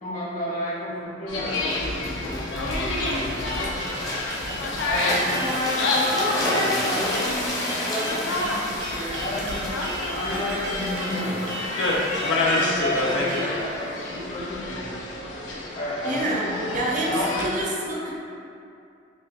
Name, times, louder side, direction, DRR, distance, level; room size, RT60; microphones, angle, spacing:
voice 1, 0.0-3.8 4.5-9.8 10.1-11.5 12.2-15.0 15.7-16.7 17.0-17.5, left 1 dB, 45° left, -9 dB, 1.1 m, -31 dB
sound 1, 1.3-17.5, left 2 dB, 85° left, 0.5 m, -28 dB
sound 2, 1.5-13.4 14.0-14.2, left 1 dB, 20° left, 0.7 m, -33 dB
sound 3, 3.0-13.5, right 1 dB, 85° right, 0.6 m, -35 dB
voice 2, 16.0-18.1, right 1 dB, 45° right, -4 dB, 0.6 m, -27 dB
5.4 x 2.3 x 2.3 m, 2.5 s
head